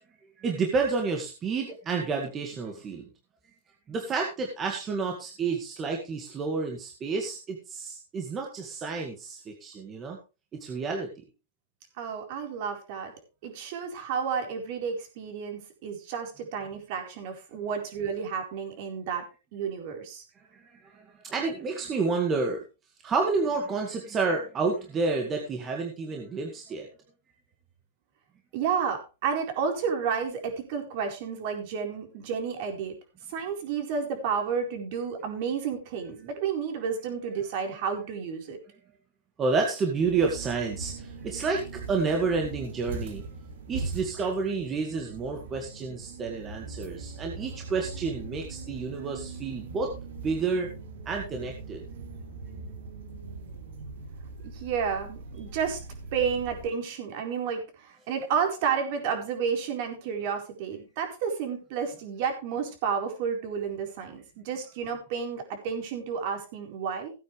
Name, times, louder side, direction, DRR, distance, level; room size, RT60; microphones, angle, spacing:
voice 1, 0.4-3.1 3.9-10.2 10.6-11.1 20.5-22.6 23.0-26.9 39.4-43.2 43.7-49.9 50.2-50.7 51.1-51.8, right 4 dB, 20° right, 2 dB, 1.9 m, -30 dB
voice 2, 12.0-13.1 13.4-19.2 19.5-20.2 28.5-33.0 33.3-38.6 44.2-44.3 54.4-55.8 56.1-67.1, right 6 dB, 45° right, 4 dB, 4.4 m, -31 dB
sound 1, 39.9-56.7, right 4 dB, 70° right, 3.4 m, -41 dB
16.5 x 9.2 x 3.3 m, 0.30 s
supercardioid pair, 155°, 0 cm